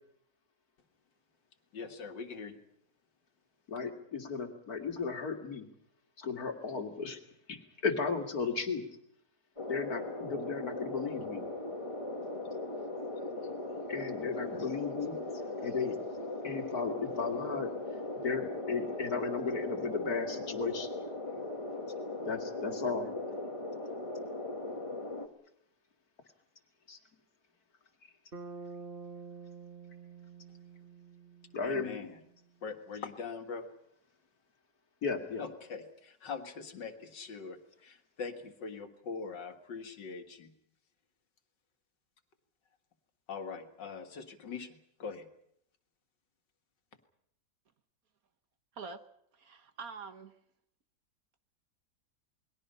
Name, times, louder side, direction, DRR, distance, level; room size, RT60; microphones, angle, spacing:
voice 1, 1.7-2.6 31.6-32.2 32.6-33.7 35.4-40.5 43.3-45.3, left 5 dB, 80° left, 6 dB, 2.3 m, -42 dB
voice 2, 3.7-5.7 6.2-7.2 7.5-8.8 9.7-11.5 13.9-15.2 15.6-16.0 16.4-17.7 18.2-20.9 22.2-23.1 26.9-27.0 31.5-31.9 35.0-35.5, left 5 dB, 55° left, 5 dB, 2.6 m, -35 dB
sound 1, 9.6-25.3, left 2 dB, 20° left, 1.6 m, -39 dB
Bass guitar, 28.3-32.4, right 4 dB, 35° right, 1.3 m, -48 dB
voice 3, 49.3-50.3, right 5 dB, 55° right, 9 dB, 1.6 m, -45 dB
28.5 x 21.0 x 5.6 m, 0.72 s
omnidirectional pair, 1.9 m